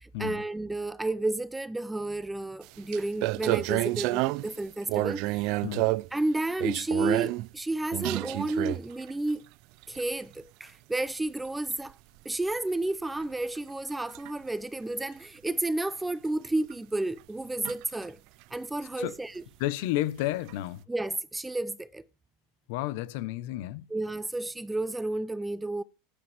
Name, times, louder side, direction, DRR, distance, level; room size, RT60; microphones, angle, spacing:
voice 1, 0.0-5.5 6.1-9.4 9.9-12.0 12.2-18.2 18.5-19.4 20.9-22.0 23.9-25.8, right 2 dB, 5° right, 0.7 m, -31 dB
sound 1, 2.6-2.7 2.9-4.6 4.9-6.2 6.6-7.5 7.9-9.1 9.8-10.0 11.7-11.9 13.6-13.7 14.1-14.3 16.7-16.8 17.2-17.3 17.7-18.1 20.5-20.6, right 21 dB, 55° right, 0.5 m, -29 dB
voice 2, 19.6-20.9 22.7-23.9, left 15 dB, 65° left, 1.1 m, -31 dB
13.5 x 10.0 x 3.6 m
supercardioid pair, 130°, 0 cm